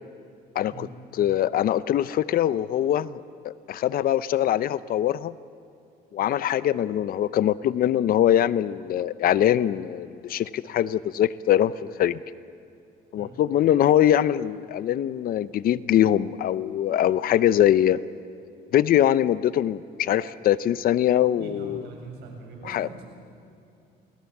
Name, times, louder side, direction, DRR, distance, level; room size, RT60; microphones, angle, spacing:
voice 1, 0.5-0.9 1.1-5.3 6.1-12.2 13.1-18.0 18.7-21.9 22.6-22.9, left 11 dB, 60° left, 16 dB, 0.7 m, -23 dB
voice 2, 21.2-23.0, right 4 dB, 75° right, 1 dB, 7.6 m, -42 dB
28.5 x 20.5 x 7.3 m, 2.6 s
cardioid pair, 110°, 17 cm